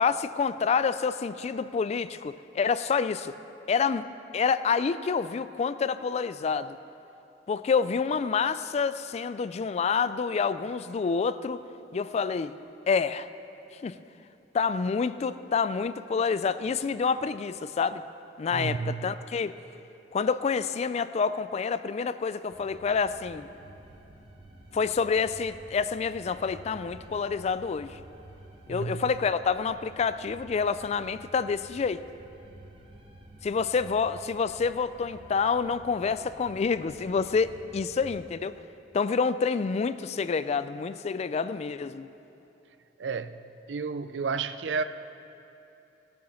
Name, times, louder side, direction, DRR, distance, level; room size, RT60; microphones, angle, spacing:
voice 1, 0.0-3.3 3.7-6.8 7.5-11.6 11.9-12.5 12.9-13.3 13.8-14.0 14.5-18.0 18.4-19.6 20.1-23.5 24.7-28.0 28.7-32.0 33.4-38.5 38.9-42.1, left 5 dB, 35° left, 0.3 m, -28 dB
voice 2, 18.5-19.0 28.7-29.1 43.0-43.4 43.7-44.8, right 5 dB, 75° right, 0.5 m, -31 dB
sound 1, 22.5-38.2, right 1 dB, 30° right, 1.1 m, -51 dB
17.0 x 7.0 x 6.3 m
head